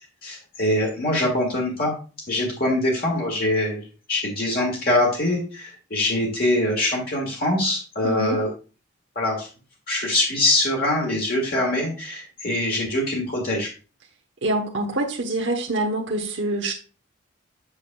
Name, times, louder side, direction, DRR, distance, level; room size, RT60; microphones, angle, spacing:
voice 1, 0.2-2.0 2.3-8.5 9.1-9.5 9.9-13.7, left 1 dB, 50° left, -1 dB, 1.7 m, -23 dB
voice 2, 8.0-8.4 14.4-16.7, right 2 dB, 60° right, 0 dB, 1.0 m, -25 dB
8.1 x 6.5 x 2.2 m, 0.36 s
head